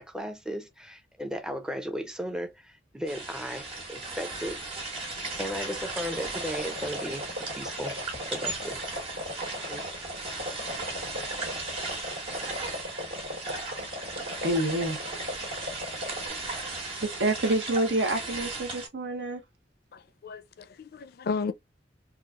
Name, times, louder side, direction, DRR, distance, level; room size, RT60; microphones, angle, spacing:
voice 1, 0.0-4.6 5.4-8.8 9.2-9.3 9.7-10.0 10.3-10.6, equal, 5° right, 0.5 m, -36 dB
sound 1, 3.1-18.9, right 3 dB, 30° right, 1.3 m, -36 dB
sound 2, 6.2-16.3, left 1 dB, 60° right, 1.4 m, -38 dB
voice 2, 14.4-15.0 16.5-16.8 17.0-19.4, right 1 dB, 75° right, 0.8 m, -28 dB
voice 3, 19.9-21.5, left 5 dB, 55° left, 0.4 m, -34 dB
3.8 x 2.4 x 2.4 m
head